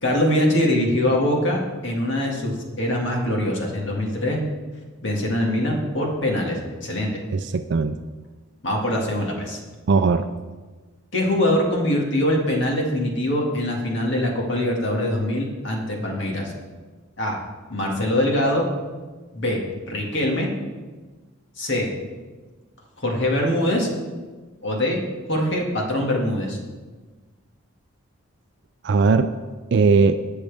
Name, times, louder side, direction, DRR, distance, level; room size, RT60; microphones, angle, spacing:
voice 1, 0.0-4.5 5.0-7.1 8.6-9.6 11.1-16.5 17.2-17.4 17.7-18.6 19.3-19.6 19.9-20.5 21.6-21.9 23.0-23.9 24.6-25.0 25.3-26.6, left 1 dB, 60° left, -1 dB, 2.1 m, -23 dB
voice 2, 7.3-8.0 9.9-10.3 28.8-29.3 29.7-30.2, right 4 dB, 55° right, 9 dB, 0.4 m, -18 dB
19.0 x 6.3 x 3.5 m, 1.3 s
head